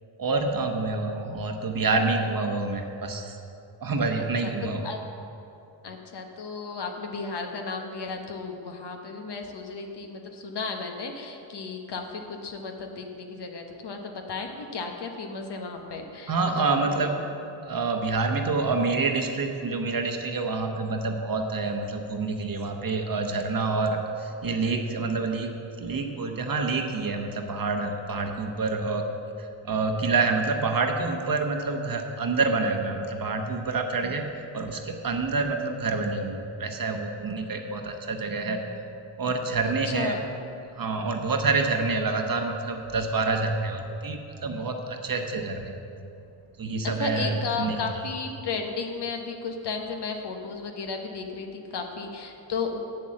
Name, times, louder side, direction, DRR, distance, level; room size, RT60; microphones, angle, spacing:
voice 1, 0.2-3.4 3.8-4.8 16.3-17.2 17.7-25.5 25.8-29.0 29.4-38.6 39.2-40.2 40.8-45.8 46.6-47.8, right 3 dB, 45° right, 4 dB, 1.1 m, -27 dB
voice 2, 4.2-5.0 5.8-16.3 16.8-17.1 39.6-40.2 46.8-52.8, left 4 dB, 55° left, 3 dB, 1.3 m, -34 dB
8.0 x 7.4 x 7.6 m, 2.7 s
cardioid pair, 100°, 49 cm